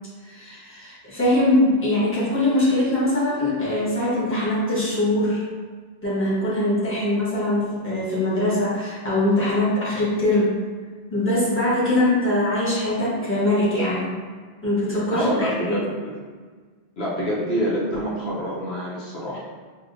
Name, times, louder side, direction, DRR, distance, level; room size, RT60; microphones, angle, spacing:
voice 1, 0.2-5.4 6.0-10.6 11.1-14.1 14.6-15.9, left 1 dB, 10° left, -9 dB, 1.2 m, -22 dB
voice 2, 15.1-16.2 17.0-19.4, equal, 75° left, -6 dB, 1.1 m, -26 dB
4.7 x 2.7 x 2.6 m, 1.5 s
omnidirectional pair, 1.1 m